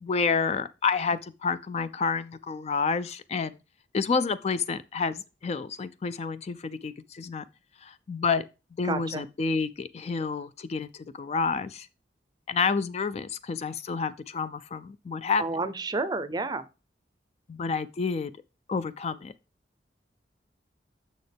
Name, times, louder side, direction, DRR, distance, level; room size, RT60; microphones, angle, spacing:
voice 1, 0.0-3.5 3.9-7.4 7.8-8.4 8.8-11.9 12.5-15.4 17.5-18.3 18.7-19.3, left 5 dB, 35° left, 0.3 m, -29 dB
voice 2, 8.8-9.2 15.4-16.6, right 3 dB, 25° right, 0.5 m, -30 dB
6.7 x 6.4 x 3.3 m
head